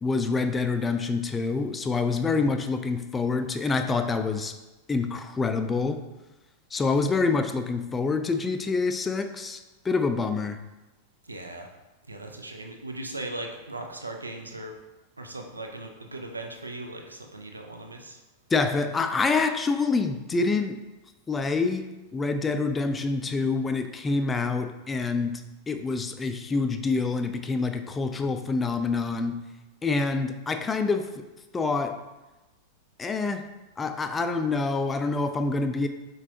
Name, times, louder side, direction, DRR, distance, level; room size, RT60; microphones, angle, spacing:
voice 1, 0.0-4.6 4.9-6.0 6.7-10.6 18.5-20.8 21.3-25.4 25.7-29.4 29.8-31.3 31.5-32.0 33.0-33.5 33.8-35.9, left 4 dB, 15° left, 8 dB, 0.3 m, -26 dB
voice 2, 2.3-2.6 11.2-11.7 12.1-14.8 15.2-18.2, right 2 dB, 80° right, 3 dB, 0.5 m, -38 dB
4.6 x 4.0 x 2.8 m, 1.1 s
figure-of-eight pair, 90°, 0 cm